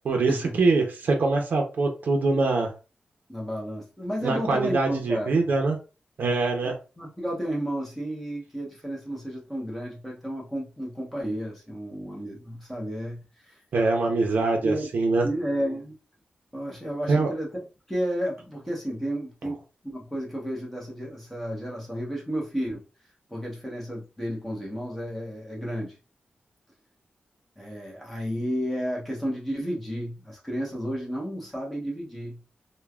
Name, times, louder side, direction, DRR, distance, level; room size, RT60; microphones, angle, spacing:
voice 1, 0.0-2.7 4.2-5.8 6.2-6.7 13.7-15.2 17.1-17.3, right 3 dB, 75° right, 0.6 m, -23 dB
voice 2, 3.3-5.4 7.0-13.6 14.6-14.9 15.2-15.9 16.5-17.5 17.9-19.6 19.8-22.8 23.3-26.0 27.6-32.4, equal, 5° left, 0.9 m, -32 dB
3.2 x 2.2 x 2.3 m
wide cardioid pair, 120°, 3 cm